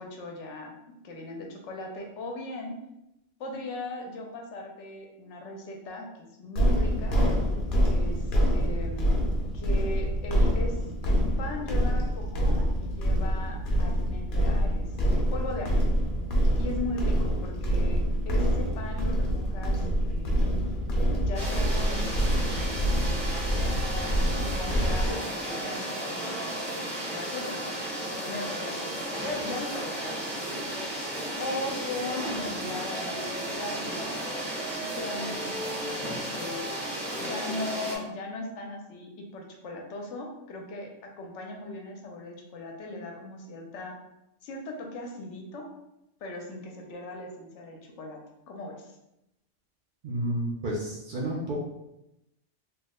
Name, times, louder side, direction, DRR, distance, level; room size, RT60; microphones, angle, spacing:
voice 1, 0.0-2.8 3.4-7.2 7.8-9.1 9.5-10.8 11.0-15.9 16.6-20.5 21.2-22.7 23.6-27.8 28.0-28.9 29.2-30.3 30.5-30.8 31.4-34.0 34.8-36.7 37.2-43.9 44.4-45.7 46.2-48.2 48.5-49.0, left 2 dB, 75° left, 2 dB, 0.9 m, -38 dB
sound 1, 6.6-25.1, equal, 55° left, 0.7 m, -26 dB
sound 2, 21.3-38.0, right 1 dB, 5° left, 0.6 m, -34 dB
voice 2, 50.0-51.6, right 1 dB, 55° right, -3 dB, 0.6 m, -30 dB
2.9 x 2.0 x 3.5 m, 0.88 s
omnidirectional pair, 1.3 m